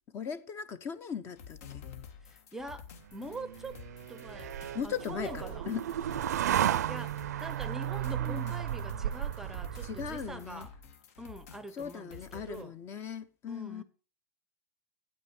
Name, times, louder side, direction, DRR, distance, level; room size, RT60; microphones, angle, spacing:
voice 1, 0.1-1.9 4.7-5.9 8.0-8.5 9.8-10.7 11.7-13.8, left 7 dB, 30° left, 0.7 m, -38 dB
sound 1, 1.3-12.6, left 7 dB, 65° left, 1.5 m, -51 dB
voice 2, 2.2-4.5 4.8-5.7 6.9-10.7 11.2-12.8 13.5-13.8, right 1 dB, 5° right, 0.7 m, -44 dB
sound 2, 3.1-10.5, right 11 dB, 85° right, 0.5 m, -34 dB
9.5 x 8.7 x 4.4 m
supercardioid pair, 135°, 9 cm